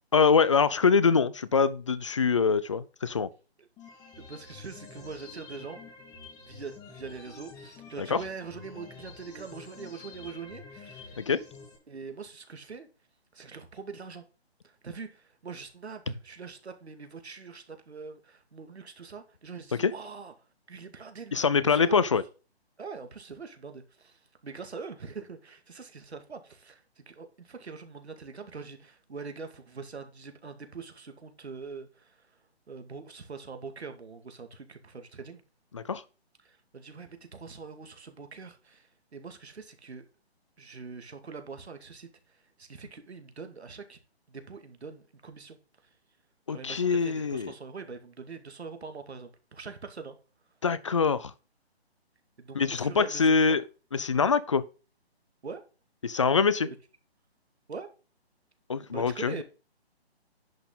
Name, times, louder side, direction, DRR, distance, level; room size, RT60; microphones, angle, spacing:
voice 1, 0.1-3.3 8.0-8.2 11.2-11.4 19.8-19.9 21.3-22.2 35.7-36.0 46.5-47.5 50.6-51.3 52.5-53.6 53.9-54.6 56.0-56.7 58.7-59.4, left 5 dB, 30° left, 0.5 m, -24 dB
sound 1, 3.8-11.8, left 4 dB, 10° left, 1.5 m, -48 dB
voice 2, 4.2-5.8 6.4-11.2 11.9-12.9 13.3-14.2 14.6-20.3 20.7-22.0 22.8-32.3 32.7-35.4 36.4-40.1 40.6-42.1 42.6-44.0 44.3-45.6 46.5-50.1 52.4-53.6 55.4-55.6 56.6-56.8 57.7-57.9 58.9-59.4, right 5 dB, 80° right, 2.3 m, -43 dB
10.5 x 5.8 x 4.0 m
hypercardioid pair, 165°, 32 cm